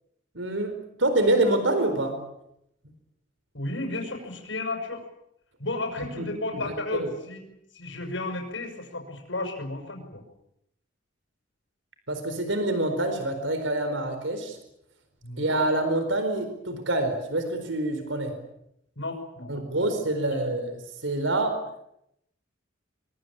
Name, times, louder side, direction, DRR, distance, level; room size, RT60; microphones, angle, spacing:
voice 1, 0.3-2.2 6.2-6.3 6.5-7.1 12.1-14.6 15.4-18.3 19.5-21.6, right 2 dB, 85° right, 8 dB, 4.5 m, -26 dB
voice 2, 3.5-5.0 5.6-7.5 7.7-10.2 15.2-15.5 19.0-19.5 19.8-19.9, left 2 dB, 80° left, 1 dB, 6.7 m, -33 dB
24.5 x 23.5 x 8.9 m, 0.78 s
head